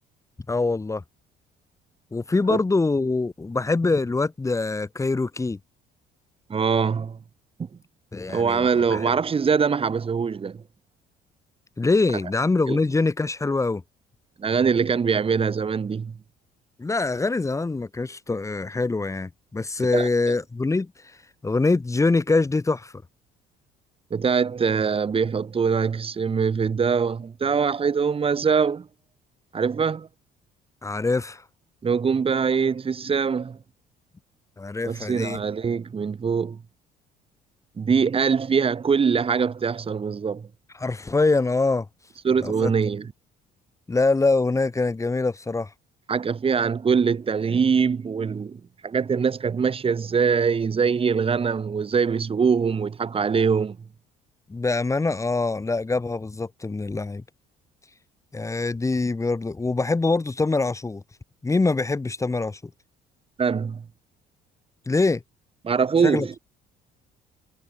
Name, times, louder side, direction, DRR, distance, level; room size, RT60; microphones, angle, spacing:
voice 1, 0.5-1.0 2.1-5.6 8.1-9.1 11.8-13.8 16.8-20.9 21.4-22.9 30.8-31.4 34.6-35.4 40.8-41.9 42.4-42.7 43.9-45.7 54.5-57.2 58.3-61.0 61.4-62.6 64.9-65.2 66.0-66.3, left 3 dB, 20° left, 4.3 m, -24 dB
voice 2, 6.5-7.2 7.6-7.7 8.3-10.6 12.7-12.8 14.4-16.2 19.9-20.1 24.1-28.9 29.5-30.1 31.8-33.6 34.8-36.6 37.8-40.5 42.2-43.1 46.1-53.8 63.4-63.8 65.6-66.3, right 6 dB, 35° right, 5.8 m, -23 dB
cardioid pair, 110°, 17 cm